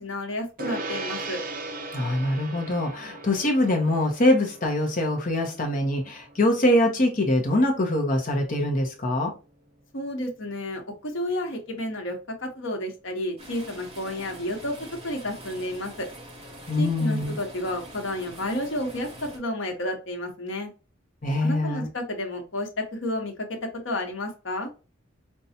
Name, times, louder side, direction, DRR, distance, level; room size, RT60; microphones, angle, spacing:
voice 1, 0.0-1.4 9.9-16.1 16.8-20.7 21.4-24.7, left 1 dB, 70° left, 2 dB, 1.2 m, -31 dB
Gong, 0.6-10.3, right 2 dB, 45° right, 0.7 m, -40 dB
voice 2, 1.9-9.3 16.7-17.4 21.2-21.9, left 1 dB, 40° left, 2 dB, 0.8 m, -23 dB
sound 1, 13.4-19.4, right 1 dB, 30° right, 1.5 m, -44 dB
5.4 x 2.3 x 2.8 m, 0.32 s
head